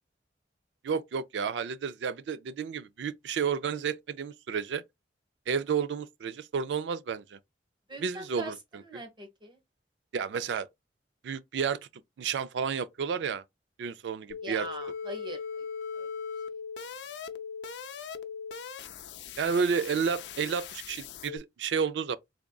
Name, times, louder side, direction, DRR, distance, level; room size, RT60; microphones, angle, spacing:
voice 1, 0.8-4.8 5.5-7.4 8.0-8.5 10.1-10.7 11.2-11.8 12.2-13.4 13.8-14.7 19.4-22.2, right 6 dB, 75° right, 0.4 m, -31 dB
voice 2, 7.9-9.6 14.4-15.7 15.9-16.1, right 1 dB, 25° right, 1.1 m, -42 dB
sound 1, 14.3-21.4, left 6 dB, 75° left, 0.5 m, -39 dB
3.7 x 3.5 x 2.2 m
head